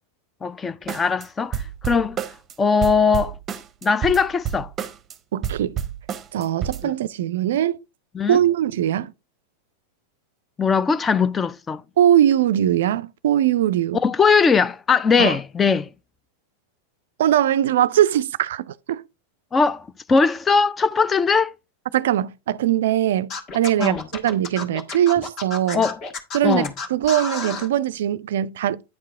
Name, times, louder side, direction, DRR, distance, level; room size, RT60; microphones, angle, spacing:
voice 1, 0.4-2.2 2.6-3.4 3.8-4.7 6.8-6.9 8.1-8.4 10.6-11.8 14.0-15.9 19.5-21.5 23.8-24.0 25.7-26.0 26.4-26.7, left 5 dB, 15° left, 0.3 m, -20 dB
sound 1, 0.9-1.3 1.5-2.5 2.8-5.1 5.4-6.8, right 9 dB, 25° right, 0.7 m, -29 dB
voice 2, 5.3-5.8 6.3-7.8 8.3-9.1 12.0-14.0 15.2-15.4 17.2-19.0 21.9-25.8 26.3-28.8, right 11 dB, 60° right, 0.3 m, -21 dB
Scratching (performance technique), 23.3-27.7, left 4 dB, 35° left, 1.5 m, -31 dB
9.5 x 4.6 x 3.5 m
figure-of-eight pair, 90°, 0 cm